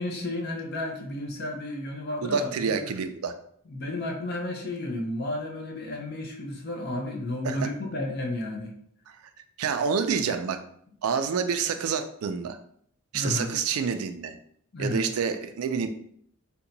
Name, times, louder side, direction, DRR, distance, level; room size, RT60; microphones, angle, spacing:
voice 1, 0.0-2.8 3.7-8.7 9.8-9.9 13.1-13.5 14.7-15.1, left 1 dB, 45° left, 1 dB, 0.6 m, -32 dB
voice 2, 2.2-3.3 7.4-7.6 9.6-10.6 11.0-12.6 13.1-14.4 14.8-15.9, right 6 dB, 85° right, 8 dB, 0.4 m, -28 dB
2.8 x 2.2 x 3.8 m, 0.65 s
head